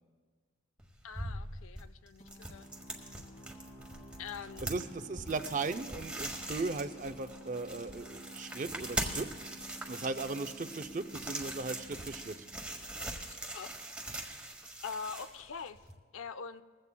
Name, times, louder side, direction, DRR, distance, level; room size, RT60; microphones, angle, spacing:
sound 1, 0.8-15.9, right 1 dB, 5° right, 1.1 m, -42 dB
voice 1, 1.0-2.7 3.0-3.1 4.2-4.7 13.2-13.7 14.8-15.8 16.1-16.6, left 6 dB, 90° left, 13 dB, 0.5 m, -43 dB
sound 2, 2.2-13.6, equal, 40° left, 1.5 m, -52 dB
voice 2, 4.6-9.3 9.9-12.5, right 3 dB, 40° right, 10 dB, 0.5 m, -37 dB
21.0 x 15.5 x 2.3 m, 1.5 s
head